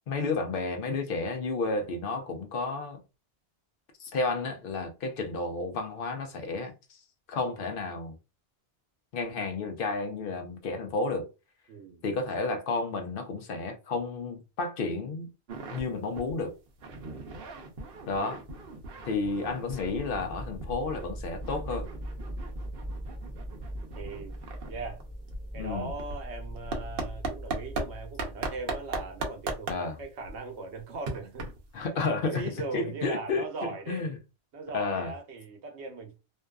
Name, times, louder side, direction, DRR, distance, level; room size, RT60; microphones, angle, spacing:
voice 1, 0.1-3.0 4.0-6.7 7.3-8.2 9.1-11.3 12.0-15.3 15.7-16.6 18.1-18.4 19.0-21.9 25.6-25.9 29.7-29.9 31.7-32.4 32.7-33.4 33.9-34.2 34.7-35.1, left 3 dB, 60° left, 0.7 m, -31 dB
voice 2, 11.7-12.0 16.9-17.2 24.0-24.4 24.7-25.0 25.5-31.9 32.2-34.1 34.5-36.2, right 3 dB, 90° right, 1.0 m, -39 dB
sound 1, 15.5-15.8 16.1-16.3 16.7-20.3 20.6-27.9 28.2-31.8, right 3 dB, 65° right, 0.8 m, -38 dB
sound 2, 19.8-29.4, right 1 dB, 5° left, 0.4 m, -41 dB
2.6 x 2.3 x 2.2 m
omnidirectional pair, 1.1 m